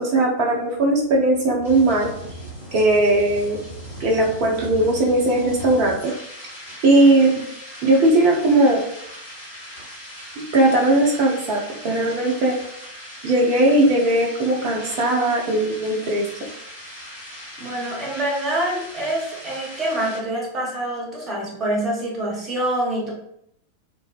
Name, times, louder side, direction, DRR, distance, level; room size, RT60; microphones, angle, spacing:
voice 1, 0.0-2.1 2.7-3.6 4.0-6.1 6.8-7.4 7.8-8.8 10.5-12.6 13.2-16.2, right 2 dB, 40° right, -1 dB, 0.5 m, -18 dB
sound 1, 0.5-20.2, equal, 65° left, 1.2 m, -39 dB
voice 2, 17.6-23.1, right 1 dB, 25° right, -3 dB, 0.9 m, -26 dB
2.5 x 2.1 x 2.3 m, 0.73 s
figure-of-eight pair, 90°, 0 cm